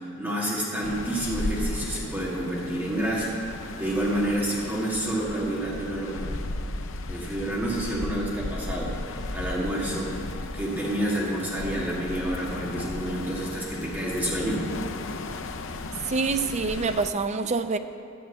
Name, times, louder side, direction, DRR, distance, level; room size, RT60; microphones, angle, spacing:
voice 1, 0.0-6.3 7.1-14.6, right 1 dB, 10° right, -5 dB, 1.9 m, -29 dB
sound 1, 0.8-17.1, left 2 dB, 65° left, 0.7 m, -35 dB
voice 2, 16.0-17.8, right 4 dB, 35° right, 9 dB, 0.5 m, -26 dB
11.0 x 7.4 x 8.5 m, 2.4 s
head